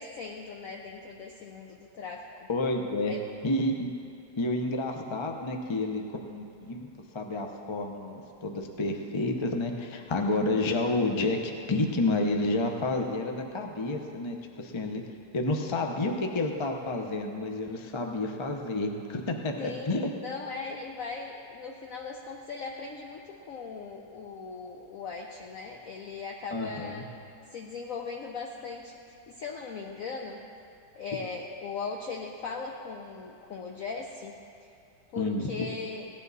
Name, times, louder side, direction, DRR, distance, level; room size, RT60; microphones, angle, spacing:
voice 1, 0.0-2.5 3.1-3.2 19.6-27.1 27.5-29.0 29.3-30.4 31.0-34.4 35.1-36.1, left 4 dB, 60° left, 0 dB, 1.0 m, -39 dB
voice 2, 2.5-3.1 3.4-3.9 4.4-15.0 15.3-20.1 26.5-27.0 35.2-35.7, left 2 dB, 30° left, 3 dB, 0.5 m, -30 dB
17.0 x 10.5 x 4.1 m, 2.6 s
omnidirectional pair, 1.9 m